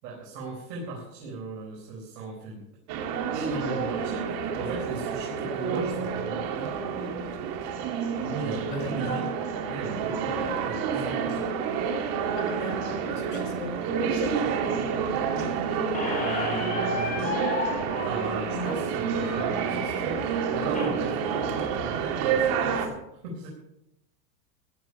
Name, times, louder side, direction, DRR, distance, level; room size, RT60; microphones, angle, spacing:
voice 1, 0.0-2.6 3.3-6.9 8.2-9.3 9.6-11.5 16.0-17.5 18.0-22.9 23.2-23.5, right 3 dB, 70° right, -2 dB, 4.5 m, -37 dB
sound 1, 2.9-22.9, right 6 dB, 45° right, 2.6 m, -29 dB
voice 2, 8.7-9.2 12.3-14.5 18.5-18.8, left 3 dB, 70° left, 4 dB, 4.4 m, -37 dB
Squeak, 15.9-20.9, left 3 dB, 15° left, 4.6 m, -34 dB
15.5 x 10.5 x 5.5 m, 0.83 s
supercardioid pair, 140°, 49 cm